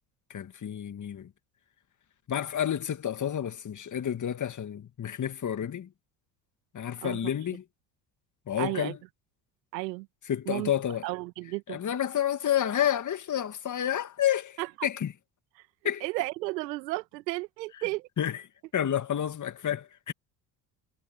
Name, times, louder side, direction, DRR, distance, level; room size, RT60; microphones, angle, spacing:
voice 1, 0.3-1.3 2.3-5.9 6.7-7.6 8.5-9.0 10.3-11.0 11.7-15.1 15.8-16.0 18.2-18.4 18.7-20.1, left 10 dB, 35° left, 2.2 m, -30 dB
voice 2, 7.0-7.3 8.6-9.0 9.7-10.1 10.5-10.7 11.0-11.8 14.6-14.9 16.0-18.1, right 21 dB, 75° right, 2.2 m, -33 dB
hypercardioid pair, 65°, 50 cm